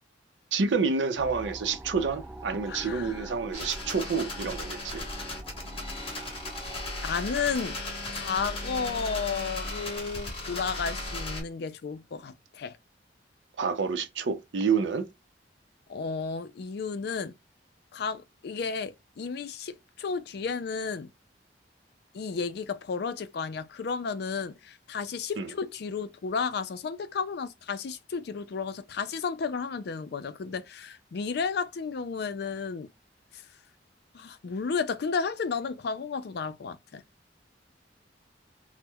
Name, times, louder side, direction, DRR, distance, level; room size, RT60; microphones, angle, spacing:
voice 1, 0.5-5.0 13.6-15.1 25.4-25.5, right 5 dB, 75° right, 0.6 m, -28 dB
sound 1, 1.2-10.4, right 2 dB, 10° right, 0.5 m, -46 dB
voice 2, 2.7-3.3 7.0-7.8 8.1-12.8 15.9-17.3 17.9-21.1 22.1-32.9 33.3-33.4 34.1-37.0, left 5 dB, 60° left, 0.4 m, -33 dB
sound 2, 3.5-11.4, left 2 dB, 30° left, 1.2 m, -36 dB
4.3 x 2.1 x 2.3 m
head